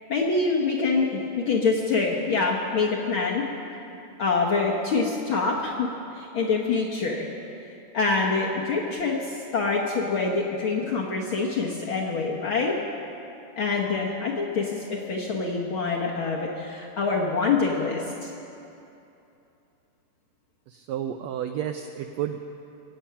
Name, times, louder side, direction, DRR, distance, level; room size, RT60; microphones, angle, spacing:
voice 1, 0.1-3.4 4.2-5.9 6.1-7.3 7.9-12.7 13.6-18.3, left 4 dB, 60° left, -2 dB, 1.3 m, -25 dB
voice 2, 20.7-22.4, right 10 dB, 90° right, 6 dB, 1.5 m, -31 dB
22.0 x 8.7 x 5.7 m, 2.8 s
omnidirectional pair, 3.6 m